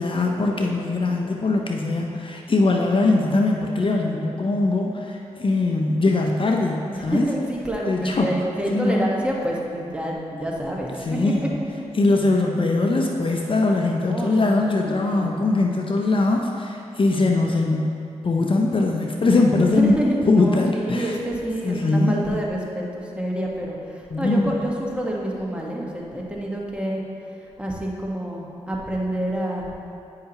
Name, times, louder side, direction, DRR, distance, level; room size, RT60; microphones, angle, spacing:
voice 1, 0.0-7.3 7.9-8.3 8.7-9.1 11.0-11.5 11.9-20.0 20.3-21.2 21.6-22.4 24.1-24.6, left 2 dB, 45° left, 1 dB, 0.7 m, -21 dB
voice 2, 6.9-10.9 11.2-11.5 14.1-15.4 19.6-23.7 24.2-27.0 27.6-29.7, right 1 dB, 10° right, -3 dB, 1.3 m, -28 dB
9.2 x 5.6 x 2.9 m, 2.6 s
cardioid pair, 50°, 12 cm